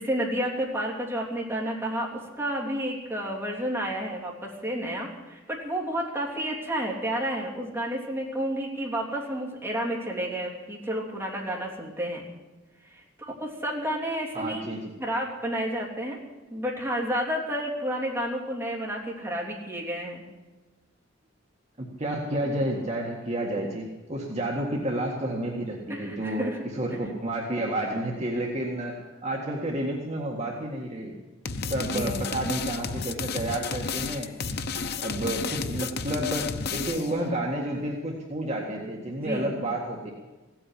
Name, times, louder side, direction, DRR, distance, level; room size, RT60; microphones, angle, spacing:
voice 1, 0.0-12.3 12.9-16.2 16.5-20.2 25.9-26.6 31.8-32.3 39.2-39.5, equal, 10° right, -3 dB, 3.2 m, -31 dB
voice 2, 14.3-14.9 21.8-26.5 26.7-29.0 29.2-31.1 31.7-34.3 35.0-40.1, right 1 dB, 35° right, -2 dB, 1.8 m, -30 dB
sound 1, 31.5-37.2, left 4 dB, 50° left, 0.7 m, -32 dB
16.5 x 8.9 x 9.9 m, 1.2 s
head